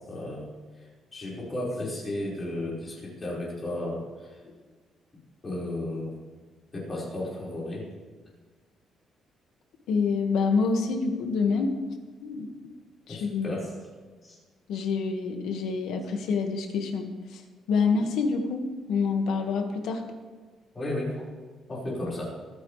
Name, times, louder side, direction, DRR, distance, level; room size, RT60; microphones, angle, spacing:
voice 1, 0.1-0.5 1.1-4.3 5.4-6.1 6.7-7.8 13.1-13.7 14.2-14.4 20.7-21.2 21.7-22.4, left 1 dB, 25° left, -6 dB, 5.3 m, -33 dB
voice 2, 9.9-11.8 12.2-12.5 13.1-13.6 14.7-17.4 17.7-20.0, left 4 dB, 85° left, 4 dB, 1.9 m, -27 dB
24.5 x 9.7 x 3.4 m, 1.4 s
cardioid pair, 170°, 0 cm